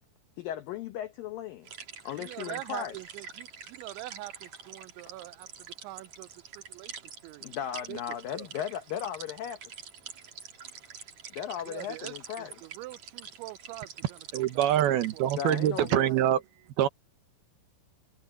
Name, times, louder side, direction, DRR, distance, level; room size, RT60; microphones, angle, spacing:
voice 1, 0.4-1.7 2.0-3.0 7.4-9.6 11.3-12.6 15.4-16.1, left 10 dB, 75° left, 2.1 m, -36 dB
sound 1, 1.6-15.9, right 6 dB, 45° right, 3.2 m, -46 dB
voice 2, 2.2-6.3 6.5-7.5 7.9-8.5 11.7-14.0 14.3-14.7 15.1-15.3 16.1-16.2, right 19 dB, 85° right, 3.0 m, -44 dB
voice 3, 14.3-16.4 16.8-16.9, right 11 dB, 70° right, 2.7 m, -25 dB
omnidirectional pair, 5.3 m